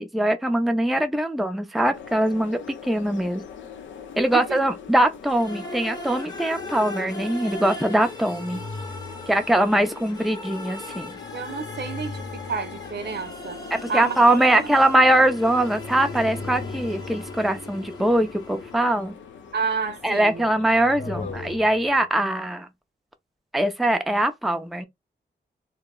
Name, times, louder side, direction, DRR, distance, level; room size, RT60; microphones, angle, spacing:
voice 1, 0.0-3.4 4.2-8.6 9.3-11.1 13.7-19.2 20.0-22.7 23.5-24.9, right 1 dB, ahead, 0.5 m, -22 dB
sound 1, 1.9-21.6, left 7 dB, 80° left, 0.5 m, -43 dB
sound 2, 5.2-19.1, left 2 dB, 20° left, 0.9 m, -39 dB
sound 3, 6.6-6.9 8.0-9.6 11.0-13.3 14.0-19.1 20.3-22.1, left 3 dB, 50° left, 0.7 m, -39 dB
voice 2, 11.3-13.6 13.9-14.6 19.5-20.5, right 5 dB, 65° right, 0.6 m, -30 dB
2.2 x 2.0 x 3.6 m
cardioid pair, 60°, 19 cm